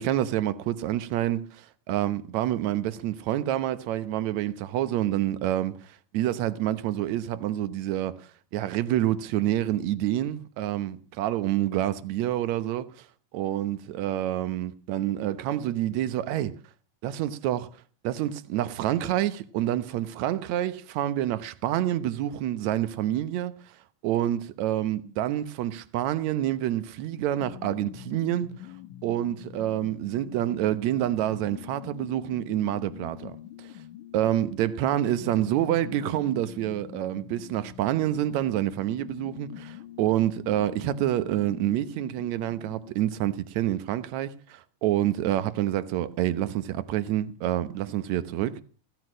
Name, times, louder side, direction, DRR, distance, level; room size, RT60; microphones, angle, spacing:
voice 1, 0.0-1.5 1.9-5.8 6.1-13.1 13.3-16.6 17.0-17.7 18.0-23.5 24.0-28.5 29.0-33.7 34.1-48.6, right 12 dB, 65° right, 2.1 m, -27 dB
sound 1, 27.4-42.9, left 12 dB, 75° left, 2.3 m, -45 dB
16.0 x 12.5 x 6.3 m
omnidirectional pair, 3.8 m